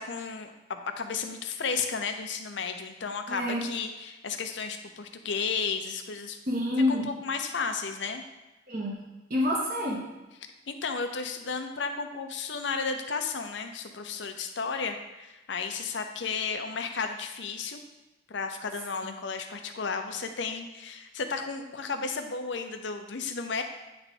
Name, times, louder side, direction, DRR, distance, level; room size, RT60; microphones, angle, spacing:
voice 1, 0.0-6.4 6.9-8.2 10.7-17.8 18.3-23.6, left 5 dB, 70° left, 6 dB, 0.7 m, -33 dB
voice 2, 3.3-3.6 6.5-7.1 8.7-10.0, left 1 dB, 45° right, -4 dB, 1.1 m, -28 dB
9.1 x 3.4 x 4.2 m, 1.0 s
head